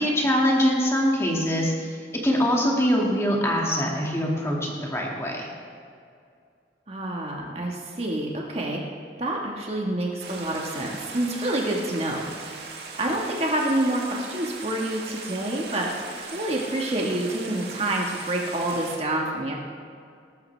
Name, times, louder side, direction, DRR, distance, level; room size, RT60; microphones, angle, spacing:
voice 1, 0.0-1.9 2.2-5.5, equal, 15° left, -2 dB, 2.2 m, -23 dB
voice 2, 6.9-8.8 9.2-12.2 13.0-15.9 16.3-19.5, right 1 dB, 35° right, -1 dB, 1.7 m, -27 dB
Stream, 10.2-19.0, right 4 dB, 70° right, 1.9 m, -39 dB
19.5 x 12.5 x 3.5 m, 2.3 s
head